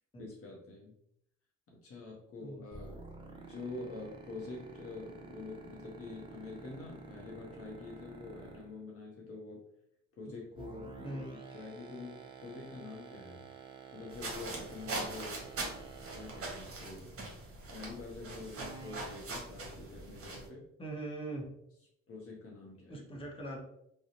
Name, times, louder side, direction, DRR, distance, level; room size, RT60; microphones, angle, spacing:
voice 1, 0.2-1.0 1.7-3.0 3.3-9.7 10.2-13.5 13.9-15.5 16.1-17.1 17.7-20.7 22.1-23.1, left 3 dB, 50° left, -2 dB, 0.6 m, -46 dB
sound 1, 2.7-8.8 10.5-16.8 18.5-19.1, right 5 dB, 15° right, 0.4 m, -49 dB
sound 2, 14.1-20.5, right 2 dB, 50° right, 0.8 m, -42 dB
voice 2, 20.8-21.5 22.9-23.6, right 2 dB, 20° left, -2 dB, 0.8 m, -41 dB
2.5 x 2.0 x 2.8 m, 0.76 s
cardioid pair, 90°, 30 cm